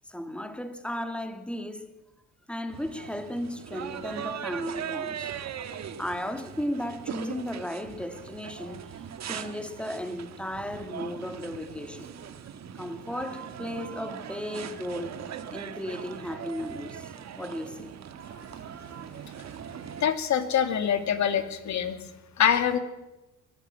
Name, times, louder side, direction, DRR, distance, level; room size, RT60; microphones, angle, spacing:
voice 1, 0.1-1.9 2.5-5.3 6.0-12.1 12.7-15.2 15.5-17.9, left 1 dB, 5° left, 2.3 m, -35 dB
sound 1, 2.7-20.1, right 8 dB, 60° right, 1.5 m, -40 dB
voice 2, 20.0-22.0 22.4-22.8, left 8 dB, 70° left, 2.5 m, -24 dB
22.0 x 13.5 x 8.8 m
cardioid pair, 90°, 30 cm